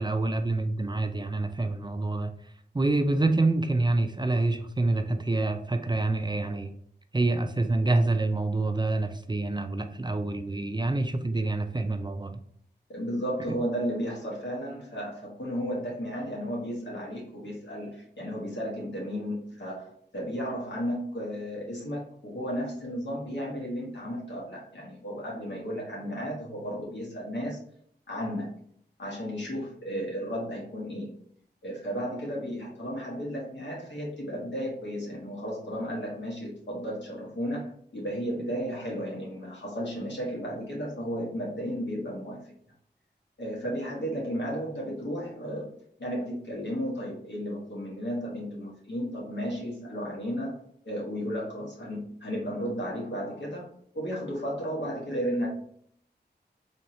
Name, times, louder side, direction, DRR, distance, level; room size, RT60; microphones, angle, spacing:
voice 1, 0.0-2.3 2.7-6.7 7.1-12.4, right 2 dB, 25° right, 7 dB, 0.4 m, -27 dB
voice 2, 12.9-27.6 28.1-28.5 29.0-31.2 31.6-42.4 43.4-45.7 46.0-53.7 53.9-55.5, equal, 80° left, -3 dB, 1.3 m, -34 dB
3.5 x 2.8 x 3.0 m, 0.64 s
wide cardioid pair, 50°, 18 cm